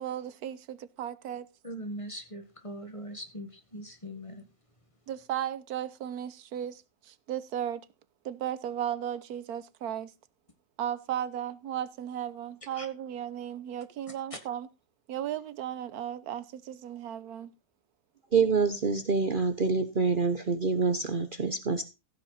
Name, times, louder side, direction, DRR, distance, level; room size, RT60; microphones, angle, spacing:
voice 1, 0.0-1.5 5.1-7.8 8.2-10.1 10.8-14.7 15.1-17.5, right 10 dB, 90° right, 1.3 m, -35 dB
voice 2, 1.6-4.5 12.8-12.9 14.3-14.4, equal, 20° left, 1.7 m, -41 dB
voice 3, 18.3-21.8, right 4 dB, 40° right, 0.9 m, -26 dB
15.0 x 7.9 x 4.1 m
omnidirectional pair, 1.6 m